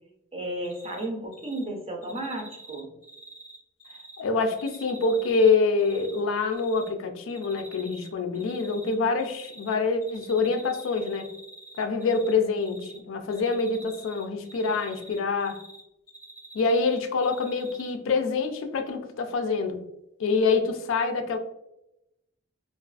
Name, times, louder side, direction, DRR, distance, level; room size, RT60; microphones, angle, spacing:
voice 1, 0.3-2.9, right 1 dB, 30° right, 0 dB, 0.5 m, -33 dB
Cricket, 0.6-1.0 1.3-1.6 2.0-4.2 4.5-6.2 6.5-6.9 7.3-8.1 8.3-9.7 10.0-12.3 12.6-13.0 13.3-15.8 16.1-17.9, right 2 dB, 20° left, 0.5 m, -47 dB
voice 2, 4.2-11.3 11.8-15.6 16.5-19.8 20.2-21.4, left 4 dB, 75° left, 6 dB, 0.3 m, -26 dB
2.4 x 2.3 x 2.3 m, 0.87 s
head